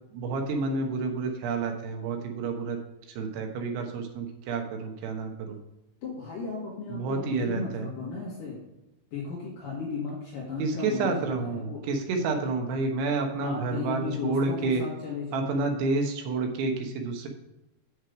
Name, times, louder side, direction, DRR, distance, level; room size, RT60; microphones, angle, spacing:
voice 1, 0.1-2.8 3.1-5.6 6.9-7.9 10.6-14.8 15.3-17.3, right 3 dB, 75° right, 3 dB, 3.1 m, -29 dB
voice 2, 6.0-8.6 9.1-11.8 13.4-15.4, left 4 dB, 55° left, -4 dB, 2.8 m, -35 dB
7.9 x 6.2 x 5.0 m, 0.93 s
omnidirectional pair, 5.3 m